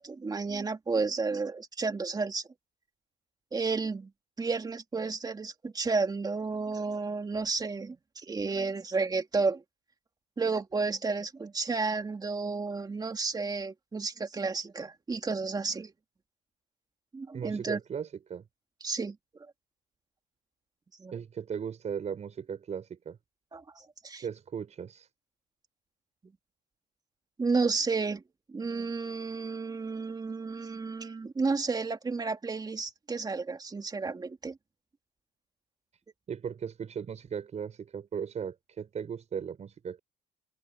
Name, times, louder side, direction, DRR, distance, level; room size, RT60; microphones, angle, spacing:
voice 1, 0.0-2.4 3.5-4.1 4.4-9.6 10.4-15.9 17.1-17.8 18.8-19.2 21.0-21.1 23.5-24.2 27.4-28.2 28.5-34.6, right 4 dB, 25° right, 2.6 m, -32 dB
voice 2, 17.3-18.4 21.1-23.2 24.2-25.1 36.3-40.0, right 7 dB, 40° right, 6.1 m, -37 dB
cardioid pair, 110°, 17 cm